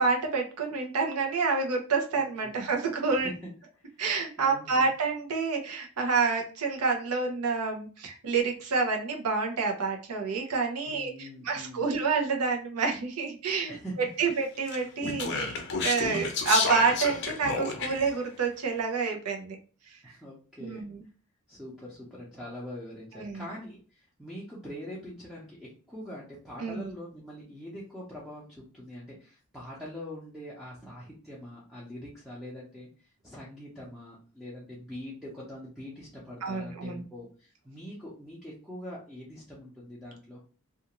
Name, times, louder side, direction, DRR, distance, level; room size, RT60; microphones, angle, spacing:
voice 1, 0.0-3.3 4.0-11.1 11.4-13.7 14.2-15.5 15.8-19.6 20.6-21.0 23.2-23.4 26.6-26.9 36.4-37.0, right 4 dB, 90° right, 2 dB, 0.7 m, -28 dB
voice 2, 2.1-2.6 3.1-3.5 3.9-4.0 4.4-4.9 10.9-11.9 13.7-14.0 20.0-20.9 21.5-32.9 33.2-40.4, equal, ahead, -7 dB, 0.6 m, -43 dB
Speech, 14.7-18.1, left 4 dB, 50° left, 0.6 m, -31 dB
2.4 x 2.4 x 2.9 m, 0.37 s
head